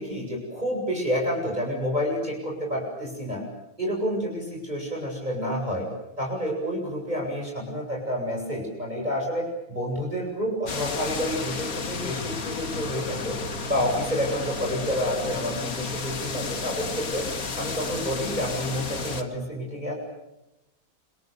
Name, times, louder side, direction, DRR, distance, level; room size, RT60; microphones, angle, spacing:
voice 1, 0.0-3.4 3.8-5.9 6.2-13.4 13.7-17.3 17.5-19.9, equal, 20° right, -1 dB, 8.1 m, -29 dB
sound 1, 10.7-19.2, left 4 dB, 45° left, 2.4 m, -32 dB
28.5 x 28.0 x 7.0 m, 0.93 s
omnidirectional pair, 2.1 m